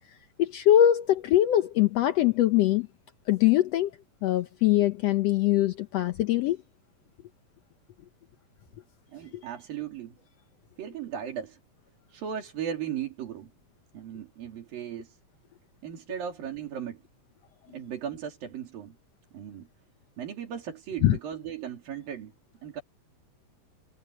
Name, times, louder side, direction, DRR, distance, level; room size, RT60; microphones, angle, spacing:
voice 1, 0.4-2.9 3.3-3.9 4.2-6.6 21.0-21.2, left 12 dB, 85° left, 1.4 m, -22 dB
voice 2, 9.1-10.2 10.8-11.6 12.1-13.5 13.9-15.2 15.8-17.0 17.7-19.0 19.3-19.7 20.2-22.3 22.6-22.8, right 9 dB, 85° right, 4.8 m, -37 dB
omnidirectional pair, 4.0 m